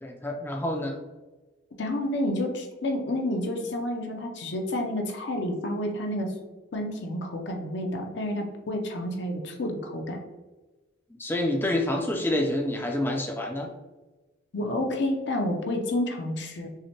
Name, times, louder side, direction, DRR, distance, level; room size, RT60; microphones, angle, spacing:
voice 1, 0.0-1.0 11.2-13.7, left 1 dB, 10° left, 2 dB, 0.4 m, -27 dB
voice 2, 1.8-6.3 6.7-10.2 14.5-16.7, left 1 dB, 60° left, 3 dB, 0.6 m, -29 dB
5.6 x 2.1 x 2.9 m, 1.2 s
head